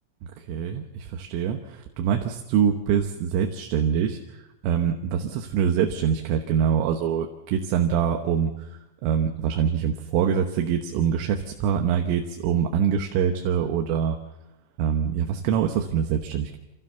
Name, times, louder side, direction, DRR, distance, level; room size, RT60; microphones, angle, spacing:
voice 1, 0.4-4.4 4.6-14.2 14.8-16.6, right 8 dB, 80° right, 4 dB, 3.7 m, -24 dB
27.0 x 15.5 x 6.9 m, 0.95 s
omnidirectional pair, 5.8 m